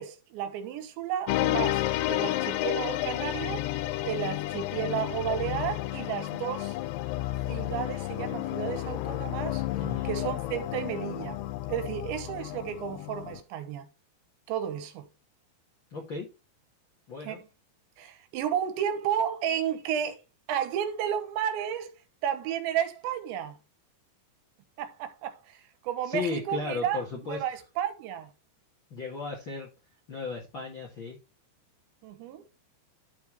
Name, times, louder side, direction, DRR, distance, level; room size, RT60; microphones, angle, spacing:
voice 1, 0.0-3.7 4.0-6.8 7.5-9.6 10.0-11.4 11.7-13.9 14.5-15.1 17.2-17.4 18.0-20.2 20.5-21.9 22.2-23.6 24.8-28.3 32.0-32.4, right 9 dB, 80° right, 3.3 m, -32 dB
sound 1, 1.3-13.4, left 15 dB, 80° left, 2.4 m, -31 dB
voice 2, 9.8-10.1 15.9-16.3 17.1-17.4 26.0-27.4 28.9-29.7 30.1-31.2, left 4 dB, 60° left, 1.2 m, -35 dB
11.5 x 4.8 x 3.4 m
omnidirectional pair, 5.3 m